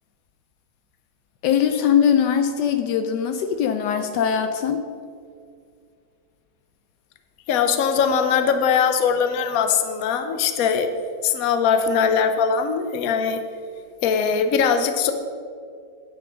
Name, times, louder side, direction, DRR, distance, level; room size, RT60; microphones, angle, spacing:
voice 1, 1.4-4.8, left 8 dB, 75° left, 7 dB, 1.2 m, -21 dB
voice 2, 7.5-10.9 11.2-13.4 14.0-15.1, left 6 dB, 60° left, 8 dB, 1.1 m, -21 dB
9.4 x 6.2 x 6.3 m, 2.2 s
omnidirectional pair, 1.9 m